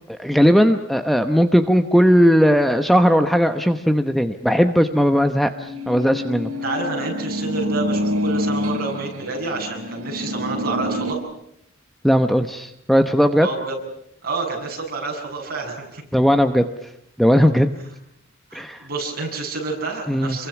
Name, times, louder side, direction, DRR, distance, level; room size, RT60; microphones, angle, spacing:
voice 1, 0.1-6.5 12.0-13.5 16.1-16.7 17.2-17.7 18.5-18.9 20.1-20.4, equal, ahead, 8 dB, 0.9 m, -17 dB
sound 1, 5.5-11.1, left 1 dB, 85° right, 2.8 m, -27 dB
voice 2, 6.6-11.2 13.4-13.8 14.2-16.0 18.5-20.5, right 3 dB, 45° right, 0 dB, 7.6 m, -29 dB
28.5 x 23.0 x 6.0 m, 0.76 s
head